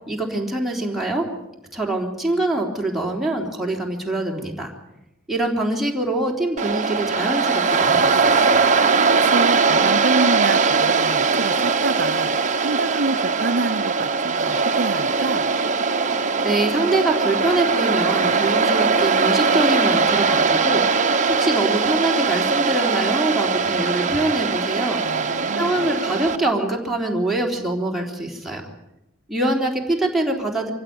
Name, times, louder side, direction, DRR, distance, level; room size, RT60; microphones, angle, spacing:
voice 1, 0.1-1.3 1.7-4.7 5.3-8.7 16.4-21.0 21.3-25.0 25.6-28.6 29.3-30.7, right 2 dB, ahead, 3.5 m, -24 dB
Waves surf, 6.6-26.4, right 4 dB, 40° right, 1.3 m, -20 dB
voice 2, 9.1-15.5 25.0-25.9, right 3 dB, 55° right, 0.9 m, -27 dB
25.0 x 16.0 x 9.5 m
head